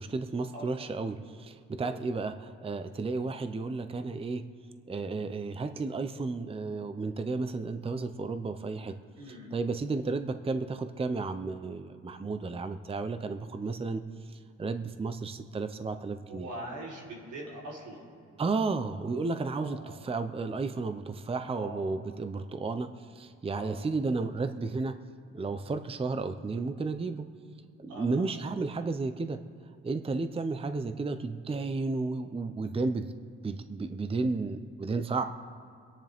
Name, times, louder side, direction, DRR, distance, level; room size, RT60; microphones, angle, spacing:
voice 1, 0.0-4.5 4.9-9.0 9.3-16.5 18.4-25.0 25.3-27.3 27.8-29.4 29.8-33.1 33.4-35.2, right 3 dB, 20° right, 9 dB, 0.7 m, -33 dB
voice 2, 1.8-2.2 9.2-9.5 16.3-18.1 19.5-20.0 21.6-21.9 23.5-23.8 27.9-28.3, right 1 dB, 85° right, -3 dB, 3.8 m, -42 dB
25.0 x 10.0 x 3.6 m, 2.4 s
cardioid pair, 90°, 30 cm